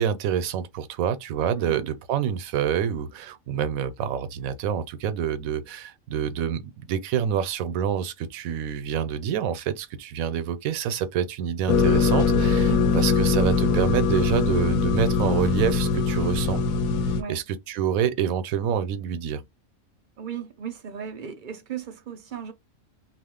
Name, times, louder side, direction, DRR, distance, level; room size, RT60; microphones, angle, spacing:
voice 1, 0.0-16.6 17.3-19.4, right 8 dB, 85° right, 1.0 m, -27 dB
voice 2, 1.6-1.9 12.7-13.0 17.1-17.4 20.2-22.5, right 7 dB, 50° right, 0.6 m, -36 dB
sound 1, 11.7-17.2, left 4 dB, 85° left, 1.0 m, -22 dB
2.4 x 2.4 x 3.6 m
omnidirectional pair, 1.4 m